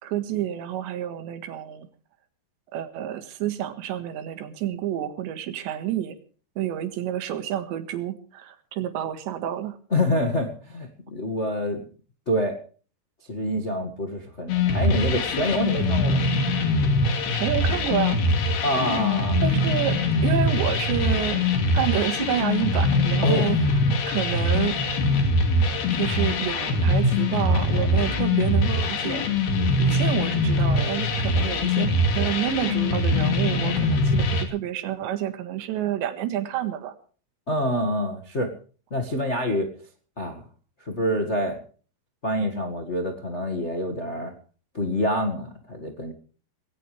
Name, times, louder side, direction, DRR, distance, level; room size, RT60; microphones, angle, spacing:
voice 1, 0.0-1.9 2.7-6.2 6.6-9.8 17.3-18.2 19.4-21.5 21.7-24.8 25.9-29.2 29.8-37.0, right 11 dB, 90° right, 9 dB, 3.9 m, -29 dB
voice 2, 9.9-11.8 12.3-12.6 13.3-16.2 18.6-19.4 23.2-23.5 37.5-38.5 38.9-39.7 40.2-40.4 40.8-41.6 42.2-44.3 44.7-46.1, left 1 dB, 80° left, 4 dB, 0.6 m, -26 dB
sound 1, 14.5-34.4, left 2 dB, 65° left, 4.2 m, -23 dB
20.0 x 17.5 x 3.4 m, 0.40 s
omnidirectional pair, 4.9 m